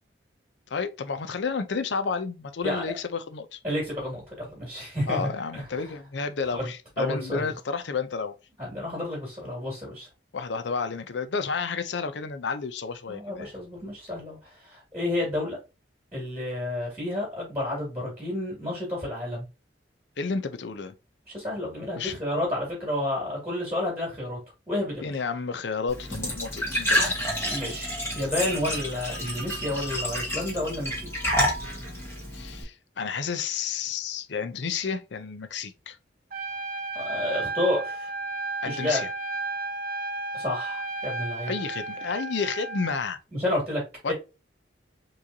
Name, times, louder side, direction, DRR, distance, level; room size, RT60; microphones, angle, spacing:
voice 1, 0.7-3.6 5.1-8.3 10.3-13.5 20.2-20.9 21.9-22.2 25.0-27.2 32.3-36.0 38.6-39.1 41.5-43.2 44.0-44.1, left 5 dB, 65° left, 0.5 m, -31 dB
voice 2, 3.6-5.6 6.5-6.7 7.0-7.5 8.6-10.1 13.1-15.6 16.1-19.5 21.3-24.4 24.7-25.1 27.4-31.0 36.9-38.1 38.6-39.0 40.3-41.5 43.3-44.1, left 1 dB, 15° right, 2.2 m, -30 dB
Glass / Trickle dribble / Fill (with liquid), 25.9-32.6, equal, 15° left, 1.7 m, -29 dB
Trumpet, 36.3-43.0, right 2 dB, 50° right, 0.6 m, -33 dB
4.7 x 3.1 x 2.7 m
head